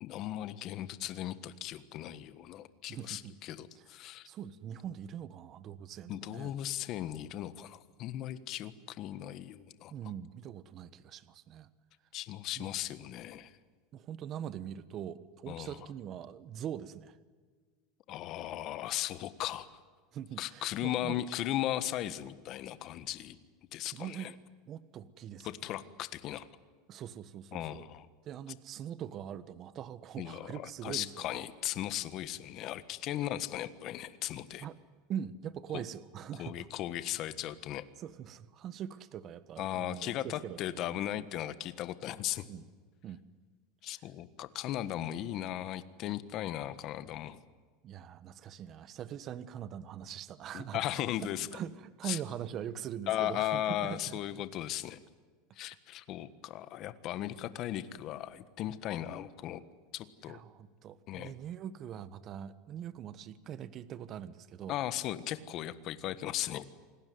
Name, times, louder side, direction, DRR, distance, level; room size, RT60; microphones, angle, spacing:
voice 1, 0.0-4.3 6.1-9.9 12.1-13.5 15.5-15.9 18.1-19.8 20.4-23.4 23.7-24.3 25.4-26.5 27.5-28.1 30.2-34.7 35.7-35.8 36.4-37.8 39.6-42.5 43.8-47.4 50.5-51.5 52.0-52.2 53.1-55.0 55.5-59.6 59.9-60.4 61.1-61.3 64.7-66.7, left 13 dB, 45° left, 14 dB, 1.5 m, -37 dB
voice 2, 2.9-3.3 3.7-3.8 4.2-6.5 9.9-11.7 12.6-12.7 13.9-17.2 20.1-21.2 23.9-24.3 24.7-25.5 26.9-27.8 28.2-31.4 34.6-34.8 35.1-36.7 38.0-41.0 42.4-42.7 43.0-43.2 43.9-44.0 47.8-51.0 51.5-54.2 60.3-64.7, right 9 dB, 35° right, 15 dB, 1.4 m, -42 dB
27.5 x 19.0 x 9.5 m, 1.5 s
supercardioid pair, 140°, 0 cm